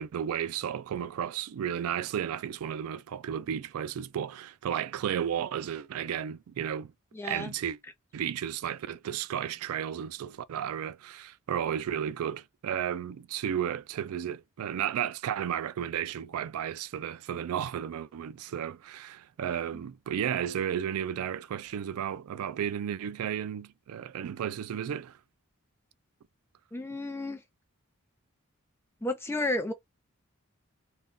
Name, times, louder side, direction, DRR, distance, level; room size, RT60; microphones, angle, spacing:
voice 1, 0.0-6.9 7.2-7.8 8.1-25.2, right 9 dB, 85° right, 0.3 m, -33 dB
voice 2, 7.1-7.5 26.7-27.4 29.0-29.7, left 2 dB, 10° left, 0.4 m, -32 dB
2.5 x 2.2 x 3.6 m
head